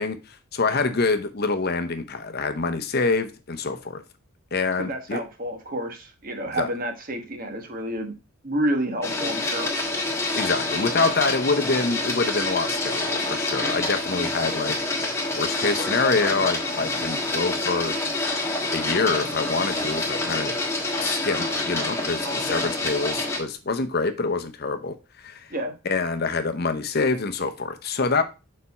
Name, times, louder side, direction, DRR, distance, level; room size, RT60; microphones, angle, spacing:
voice 1, 0.0-4.0 4.5-5.2 6.6-6.7 10.4-18.0 18.7-20.5 21.0-25.5 25.8-28.2, left 4 dB, 45° left, 0.7 m, -26 dB
voice 2, 4.8-8.1 8.4-9.7 25.5-25.7, right 1 dB, 40° right, 1.2 m, -29 dB
Printer, 9.0-23.4, left 2 dB, 10° left, 1.3 m, -27 dB
6.7 x 4.2 x 4.1 m
head